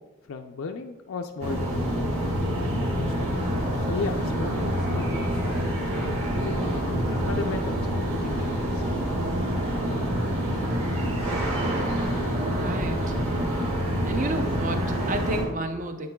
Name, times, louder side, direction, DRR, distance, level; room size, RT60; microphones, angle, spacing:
voice 1, 0.3-2.1 2.9-8.8, left 4 dB, 70° left, 4 dB, 0.4 m, -36 dB
sound 1, 1.4-15.4, equal, 85° right, 1.9 m, -27 dB
voice 2, 12.5-13.1 14.1-16.1, right 2 dB, 35° right, 7 dB, 0.5 m, -31 dB
9.4 x 7.7 x 2.2 m, 1.1 s
head